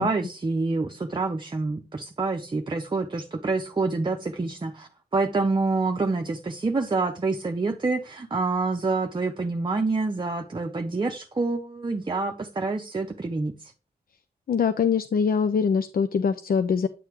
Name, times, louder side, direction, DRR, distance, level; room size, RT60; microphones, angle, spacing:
voice 1, 0.0-13.7, right 3 dB, 30° right, 0.6 m, -27 dB
voice 2, 14.5-16.9, left 6 dB, 60° left, 0.5 m, -23 dB
9.2 x 5.7 x 3.0 m
cardioid pair, 75°, 17 cm